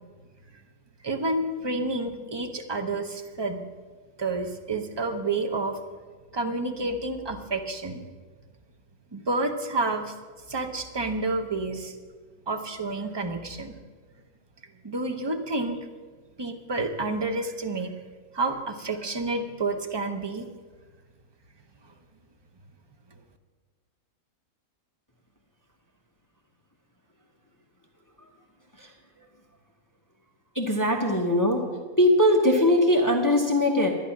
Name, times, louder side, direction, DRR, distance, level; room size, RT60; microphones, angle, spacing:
voice 1, 1.0-3.6 4.2-5.8 6.3-8.0 9.1-10.1 10.5-12.0 12.5-13.7 14.8-15.8 16.4-17.9 18.3-20.5, right 2 dB, 25° right, 6 dB, 0.6 m, -29 dB
voice 2, 30.5-31.7 32.0-33.9, left 1 dB, 15° left, 2 dB, 1.0 m, -21 dB
11.5 x 10.5 x 5.9 m, 1.4 s
omnidirectional pair, 1.5 m